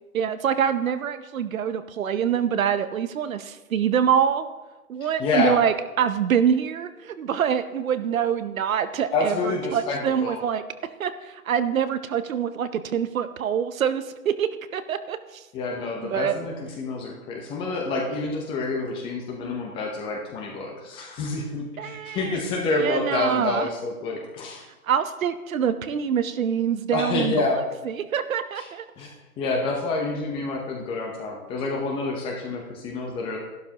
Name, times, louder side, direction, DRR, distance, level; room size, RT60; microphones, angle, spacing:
voice 1, 0.1-4.5 4.9-10.6 11.0-15.4 16.1-16.3 21.8-22.4 22.8-23.7 24.8-28.8, right 8 dB, 65° right, 11 dB, 0.9 m, -25 dB
voice 2, 5.0-5.6 9.1-10.4 15.5-24.6 26.9-27.6 28.5-28.7 29.0-33.4, left 3 dB, 10° left, 1 dB, 0.8 m, -28 dB
13.0 x 12.0 x 2.9 m, 1.1 s
hypercardioid pair, 150°, 44 cm